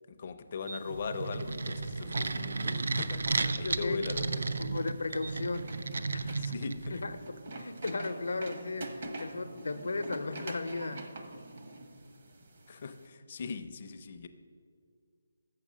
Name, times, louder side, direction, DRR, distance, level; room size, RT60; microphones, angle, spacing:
voice 1, 0.1-4.6 6.1-7.0 12.7-14.3, left 5 dB, 30° left, 9 dB, 0.4 m, -40 dB
sound 1, 0.6-13.1, right 2 dB, 45° right, 0.8 m, -47 dB
sound 2, 0.8-7.2, right 3 dB, 65° right, 0.4 m, -34 dB
voice 2, 3.4-4.0 4.6-5.7 6.1-6.4 6.9-7.2 7.6-8.9 9.2-11.1, left 3 dB, 80° left, 9 dB, 0.6 m, -35 dB
6.9 x 6.5 x 6.1 m, 2.3 s
hypercardioid pair, 175°, 0 cm